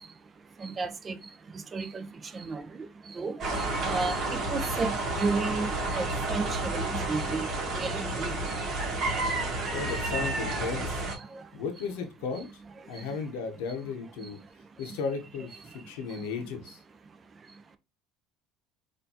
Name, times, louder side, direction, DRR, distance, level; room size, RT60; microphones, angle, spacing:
voice 1, 0.6-1.2 1.7-2.1 2.3-2.6 3.1-7.5 7.8-8.3 11.3-11.4 13.0-13.1 16.2-16.3, right 4 dB, 30° right, 0.6 m, -33 dB
sound 1, 3.4-11.1, right 2 dB, 50° right, 1.4 m, -31 dB
voice 2, 9.7-11.0 11.5-12.5 12.9-14.4 14.8-16.8, left 5 dB, 80° left, 0.8 m, -35 dB
4.3 x 2.6 x 2.8 m
supercardioid pair, 95°, 0 cm